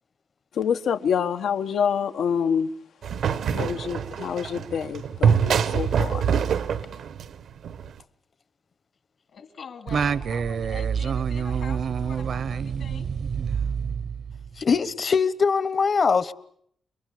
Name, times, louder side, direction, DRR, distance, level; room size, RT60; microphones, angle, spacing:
voice 1, 0.5-2.7 3.5-6.2, left 7 dB, 90° left, 1.3 m, -26 dB
sound 1, 3.0-7.9, right 7 dB, 80° right, 1.2 m, -25 dB
voice 2, 9.3-13.1 14.4-14.5, left 6 dB, 65° left, 2.6 m, -44 dB
Singing, 9.9-14.6, right 7 dB, 65° right, 1.0 m, -27 dB
voice 3, 14.6-16.3, left 5 dB, 40° left, 1.1 m, -22 dB
29.0 x 22.0 x 8.6 m
wide cardioid pair, 145°, 0 cm